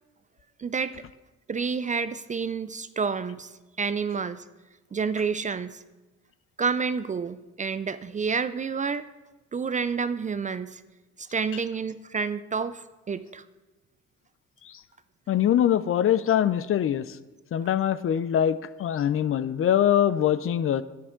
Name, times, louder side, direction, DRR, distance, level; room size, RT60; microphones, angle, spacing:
voice 1, 0.6-0.9 1.5-3.5 3.8-4.4 4.9-5.8 6.6-9.1 9.5-10.8 11.2-13.4, right 5 dB, 25° right, 14 dB, 0.3 m, -29 dB
voice 2, 15.3-17.1 17.5-20.8, left 10 dB, 45° left, 16 dB, 0.4 m, -23 dB
10.0 x 9.4 x 3.8 m, 1.2 s
cardioid pair, 90°, 30 cm